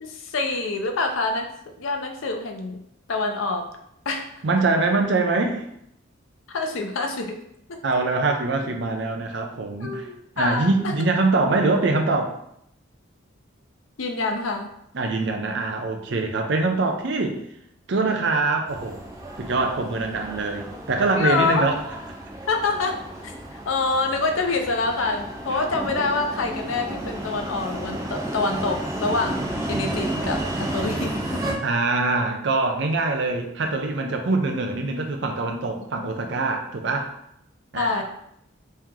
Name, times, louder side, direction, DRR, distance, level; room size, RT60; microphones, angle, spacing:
voice 1, 0.0-1.5 1.8-2.8 3.1-3.7 4.1-4.4 6.5-7.4 7.7-7.8 9.8-10.9 14.0-14.7 21.1-21.6 22.5-31.6 36.0-36.5 37.7-38.0, left 3 dB, 85° left, 4 dB, 0.6 m, -26 dB
voice 2, 4.4-5.6 7.8-10.1 10.4-12.4 14.9-17.4 17.9-19.0 19.4-21.8 25.5-25.6 31.6-37.1 37.7-38.0, right 3 dB, 60° right, 4 dB, 0.5 m, -23 dB
sound 1, 18.7-31.5, right 1 dB, 15° right, 0.5 m, -32 dB
3.2 x 2.8 x 3.6 m, 0.75 s
head